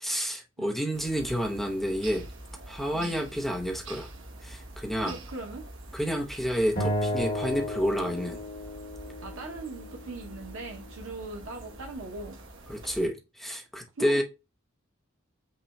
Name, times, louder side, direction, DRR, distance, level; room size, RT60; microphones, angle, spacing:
voice 1, 0.0-2.2 2.7-4.1 4.4-5.1 5.9-8.4 12.7-14.2, equal, ahead, 0.6 m, -29 dB
sound 1, 0.9-13.1, right 1 dB, 70° right, 1.0 m, -46 dB
voice 2, 5.0-5.7 9.2-12.4 14.0-14.2, right 2 dB, 85° right, 0.7 m, -40 dB
Acoustic guitar, 6.8-10.0, equal, 50° left, 1.4 m, -33 dB
5.7 x 2.2 x 4.0 m
head